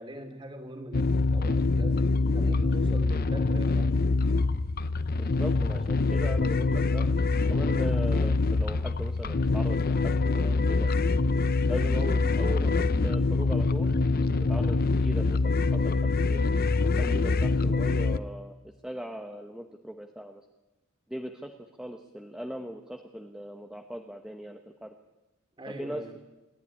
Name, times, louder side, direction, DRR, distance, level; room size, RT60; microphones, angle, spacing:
voice 1, 0.0-4.0 25.6-26.2, equal, 25° right, 6 dB, 3.0 m, -42 dB
sound 1, 0.9-18.2, left 3 dB, 45° left, 0.6 m, -25 dB
voice 2, 5.2-7.1 7.5-10.9 11.7-13.9 14.5-16.5 16.8-18.5 18.8-20.4 21.1-21.5 21.8-24.9 25.7-26.0, equal, 5° right, 3 dB, 1.0 m, -39 dB
27.5 x 11.5 x 9.9 m, 1.0 s
head